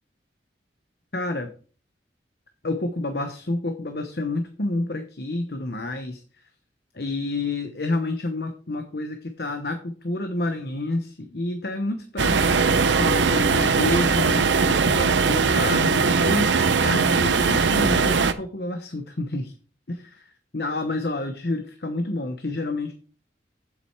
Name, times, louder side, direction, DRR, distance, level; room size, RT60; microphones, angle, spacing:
voice 1, 1.1-1.5 2.6-6.2 6.9-19.5 19.9-20.2 20.5-22.9, left 2 dB, 60° left, 7 dB, 1.0 m, -29 dB
sound 1, 12.2-18.3, right 4 dB, 85° right, 0.7 m, -20 dB
7.7 x 7.4 x 4.7 m, 0.40 s
head